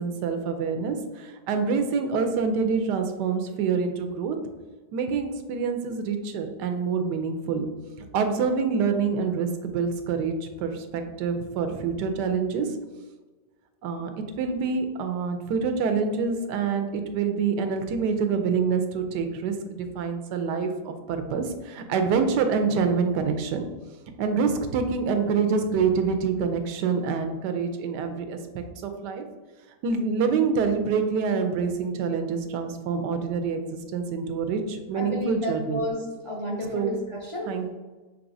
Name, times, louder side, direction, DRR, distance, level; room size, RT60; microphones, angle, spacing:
voice 1, 0.0-4.4 4.9-7.7 8.0-12.7 13.8-14.1 14.4-23.6 24.2-29.3 29.8-35.8 36.7-37.0 37.5-37.7, right 5 dB, 90° right, 6 dB, 1.2 m, -26 dB
voice 2, 34.9-37.5, left 1 dB, 60° left, -3 dB, 0.3 m, -31 dB
5.9 x 3.3 x 2.6 m, 1.3 s
omnidirectional pair, 1.8 m